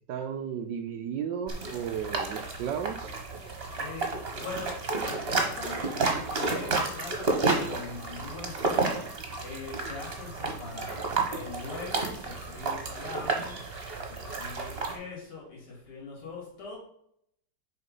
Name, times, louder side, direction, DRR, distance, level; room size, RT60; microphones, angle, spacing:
voice 1, 0.1-3.1, right 8 dB, 75° right, 7 dB, 1.0 m, -34 dB
sound 1, 1.5-15.0, right 3 dB, 35° right, 1.2 m, -31 dB
voice 2, 3.8-9.0 9.4-13.7 14.0-16.8, left 3 dB, 80° left, -3 dB, 3.6 m, -42 dB
6.7 x 4.9 x 5.3 m, 0.71 s
omnidirectional pair, 2.4 m